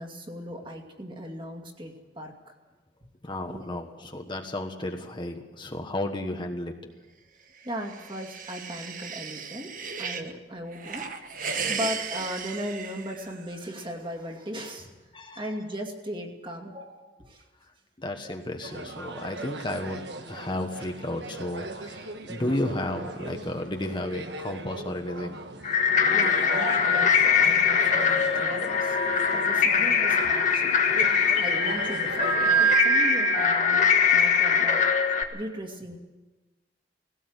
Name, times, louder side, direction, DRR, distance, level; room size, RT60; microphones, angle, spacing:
voice 1, 0.0-2.3 3.5-3.8 7.6-11.1 11.4-15.0 15.4-17.4 18.2-18.4 19.1-19.2 26.1-29.0 29.3-30.7 31.4-34.9 35.3-36.0, equal, 30° right, 2 dB, 2.4 m, -37 dB
voice 2, 3.2-6.9 15.1-15.5 18.0-25.4, left 1 dB, 25° left, 4 dB, 1.3 m, -33 dB
sound 1, 7.6-10.3 10.7-13.6, right 6 dB, 50° right, 1.4 m, -35 dB
sound 2, 18.6-32.8, right 2 dB, 70° right, 1.5 m, -38 dB
sound 3, 25.6-35.2, left 5 dB, 45° left, 1.4 m, -22 dB
19.5 x 17.0 x 8.1 m, 1.2 s
head